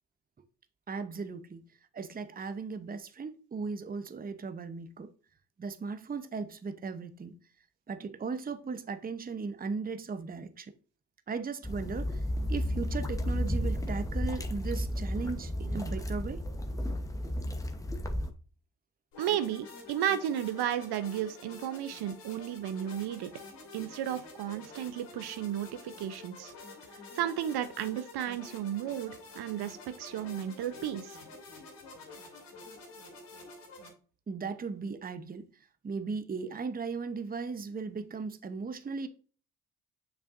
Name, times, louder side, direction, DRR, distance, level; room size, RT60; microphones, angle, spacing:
voice 1, 0.9-1.6 1.9-5.1 5.6-7.4 7.9-10.7 11.3-12.2 12.5-16.4 34.3-35.5 35.8-39.1, right 4 dB, 20° right, 0.7 m, -37 dB
sound 1, 11.6-18.3, equal, 10° left, 0.9 m, -33 dB
sound 2, 19.1-33.9, left 3 dB, 80° left, 2.5 m, -49 dB
voice 2, 19.2-23.3 23.7-26.5 27.2-31.2, right 10 dB, 65° right, 0.7 m, -33 dB
6.8 x 5.6 x 2.5 m
supercardioid pair, 65°, 42 cm